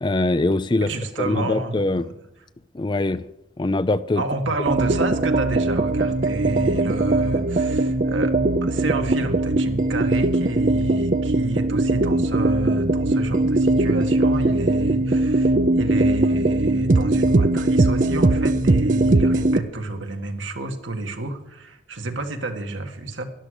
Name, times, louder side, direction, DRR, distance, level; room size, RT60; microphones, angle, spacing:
voice 1, 0.0-0.9 1.2-2.0 2.7-3.3 3.6-4.2, left 2 dB, 25° left, 0.4 m, -22 dB
voice 2, 0.8-1.9 4.2-8.3 8.6-23.2, right 2 dB, 80° right, 1.9 m, -30 dB
sound 1, 4.7-19.6, right 2 dB, 40° right, 0.5 m, -20 dB
13.0 x 11.5 x 6.6 m
head